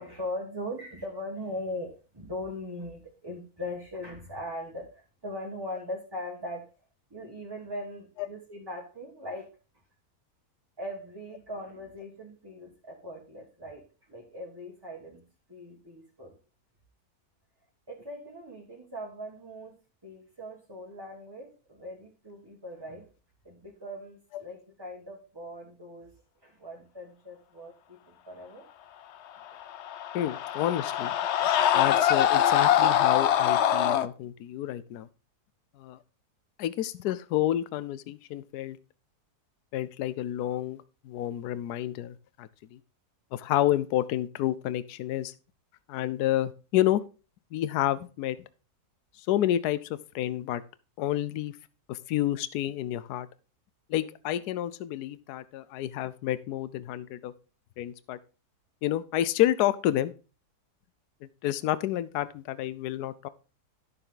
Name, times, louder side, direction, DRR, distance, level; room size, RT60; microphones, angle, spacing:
voice 1, 0.0-6.6 7.1-9.5 10.8-16.3 17.9-23.1 23.4-28.7 29.5-29.6, left 1 dB, 15° right, -1 dB, 1.6 m, -40 dB
Screaming, 29.6-34.1, left 10 dB, 65° left, 0.7 m, -24 dB
voice 2, 30.1-31.1 31.7-35.1 35.8-36.0 36.6-38.8 39.7-42.8 43.3-45.3 45.9-47.0 47.5-48.4 49.2-50.6 51.0-51.6 51.9-53.3 53.9-57.3 57.8-58.2 58.8-60.1 61.2-63.3, left 13 dB, 80° left, 15 dB, 1.2 m, -29 dB
11.5 x 6.9 x 3.8 m, 0.34 s
omnidirectional pair, 1.7 m